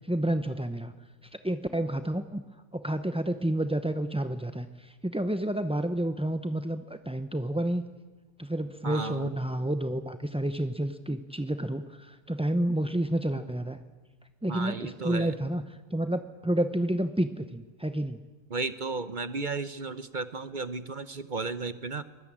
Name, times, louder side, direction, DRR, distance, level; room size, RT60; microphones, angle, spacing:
voice 1, 0.1-0.9 1.4-2.4 2.7-7.8 8.4-13.8 14.4-15.6 15.9-18.2, right 1 dB, 10° right, 9 dB, 0.4 m, -30 dB
voice 2, 8.8-9.3 14.5-15.4 18.5-22.0, right 4 dB, 40° right, 13 dB, 0.8 m, -34 dB
23.5 x 21.0 x 8.7 m, 1.2 s
omnidirectional pair, 1.6 m